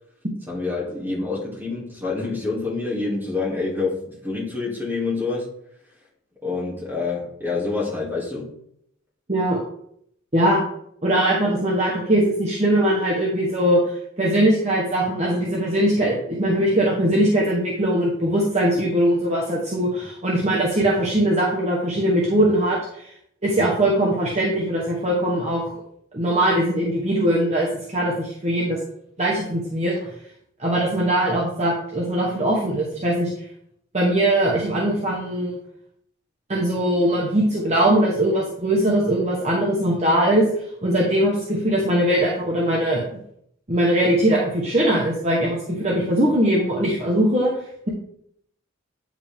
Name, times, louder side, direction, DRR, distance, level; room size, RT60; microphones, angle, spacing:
voice 1, 0.5-5.5 6.4-8.6, left 3 dB, 10° right, -6 dB, 2.6 m, -27 dB
voice 2, 9.3-9.6 10.3-10.6 11.0-23.1 23.4-25.6 26.1-28.8 29.2-30.0 30.6-33.3 33.9-35.5 36.5-40.5 40.8-43.1 43.7-47.5, right 1 dB, 35° right, -3 dB, 1.2 m, -21 dB
9.1 x 5.1 x 3.6 m, 0.70 s
head